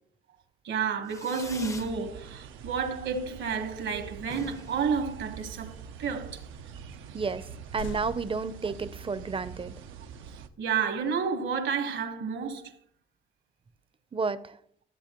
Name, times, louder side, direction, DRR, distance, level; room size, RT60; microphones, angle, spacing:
voice 1, 0.6-6.4 10.6-12.7, right 6 dB, 70° right, 1.3 m, -30 dB
Fireworks, 1.0-2.0 2.3-2.9 3.2-3.3 3.5-3.6 3.9-4.0 4.2-5.8, left 2 dB, 15° left, 0.5 m, -45 dB
sound 1, 1.5-10.5, right 7 dB, 90° right, 0.7 m, -45 dB
sound 2, 4.6-5.0 5.7-5.8 6.6-6.7 7.2-9.2, left 5 dB, 70° left, 0.9 m, -45 dB
voice 2, 7.1-9.7 14.1-14.6, right 4 dB, 25° right, 0.6 m, -31 dB
13.0 x 7.7 x 3.0 m
cardioid pair, 90°, 20 cm